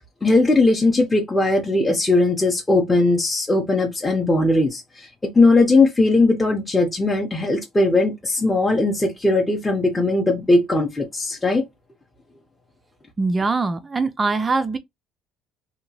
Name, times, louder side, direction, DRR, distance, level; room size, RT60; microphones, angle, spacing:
voice 1, 0.2-5.1 5.3-11.6, left 2 dB, 15° left, 0.6 m, -19 dB
voice 2, 13.2-14.8, right 3 dB, 20° right, 0.4 m, -22 dB
2.8 x 2.2 x 2.7 m
cardioid pair, 110°, 0 cm